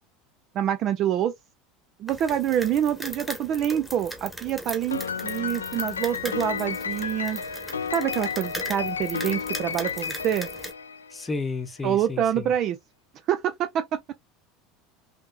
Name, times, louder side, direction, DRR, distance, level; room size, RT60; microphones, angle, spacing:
voice 1, 0.5-1.3 2.0-7.4 7.9-10.5 11.8-12.8 13.3-14.1, right 10 dB, 45° right, 0.4 m, -26 dB
sound 1, 2.1-10.7, equal, 5° right, 1.2 m, -38 dB
Piano, 4.9-11.4, left 6 dB, 80° left, 0.4 m, -32 dB
voice 2, 11.1-12.5, left 4 dB, 15° left, 0.9 m, -32 dB
5.6 x 2.7 x 2.3 m
figure-of-eight pair, 70°, 0 cm